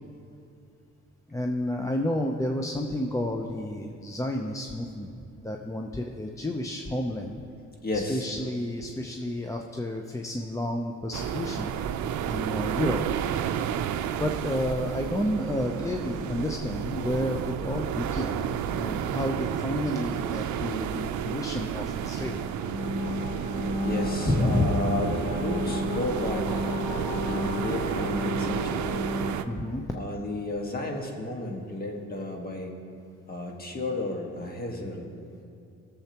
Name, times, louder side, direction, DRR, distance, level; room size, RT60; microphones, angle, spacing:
voice 1, 1.3-7.4 8.1-11.7 12.2-13.3 14.2-22.4 24.3-24.8 29.4-29.8, left 1 dB, 10° left, 2 dB, 0.6 m, -30 dB
voice 2, 7.8-8.3 23.8-29.0 29.9-32.8 33.3-35.1, left 2 dB, 30° left, 1 dB, 1.6 m, -33 dB
sound 1, 11.1-29.4, right 9 dB, 70° right, 0.6 m, -31 dB
sound 2, 22.2-29.3, left 2 dB, 65° left, 1.5 m, -32 dB
19.0 x 7.1 x 2.9 m, 2.5 s
cardioid pair, 90°, 30 cm